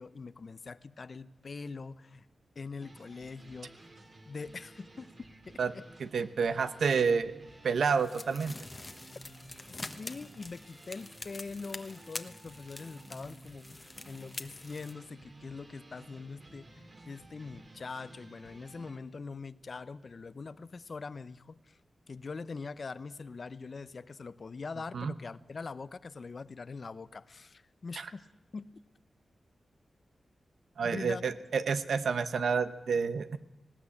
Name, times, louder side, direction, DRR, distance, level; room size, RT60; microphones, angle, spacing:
voice 1, 0.0-2.2 2.6-3.9 4.3-5.8 10.0-21.8 22.1-28.3 28.5-28.8 30.8-31.2, left 4 dB, 50° left, 15 dB, 0.7 m, -43 dB
sound 1, 2.8-19.0, right 2 dB, 45° right, 2.9 m, -54 dB
voice 2, 6.0-7.3 7.6-8.5 24.9-25.1 28.0-28.1 30.8-33.4, right 5 dB, 90° right, 11 dB, 1.0 m, -29 dB
sound 2, 7.9-14.9, left 2 dB, 30° left, 1.1 m, -46 dB
19.5 x 17.5 x 8.5 m, 1.0 s
wide cardioid pair, 100°, 0 cm